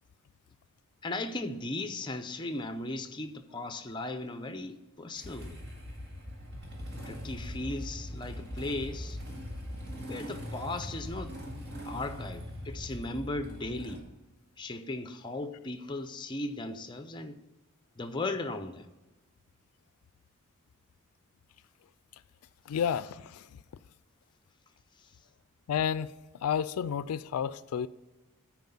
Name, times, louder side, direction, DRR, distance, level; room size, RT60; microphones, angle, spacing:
voice 1, 1.0-5.6 7.1-9.2 10.1-11.4 11.8-14.0 14.6-17.4 18.0-18.9, left 2 dB, 20° left, 0.5 m, -37 dB
Motorcycle / Engine starting, 5.2-14.0, equal, 50° right, 1.9 m, -41 dB
voice 2, 22.7-23.6 25.7-26.1 26.4-27.9, left 8 dB, 85° left, 0.3 m, -31 dB
9.5 x 4.6 x 5.5 m
head